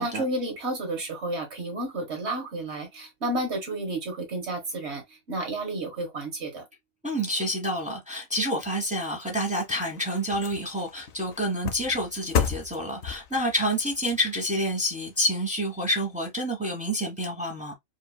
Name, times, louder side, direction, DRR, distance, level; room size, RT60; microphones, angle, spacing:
voice 1, 0.0-6.6, right 2 dB, 55° right, 1.6 m, -31 dB
voice 2, 7.0-17.7, equal, 5° right, 1.0 m, -28 dB
sound 1, 9.4-15.9 16.3-16.4, left 7 dB, 60° left, 0.9 m, -34 dB
4.9 x 2.6 x 2.2 m
omnidirectional pair, 1.4 m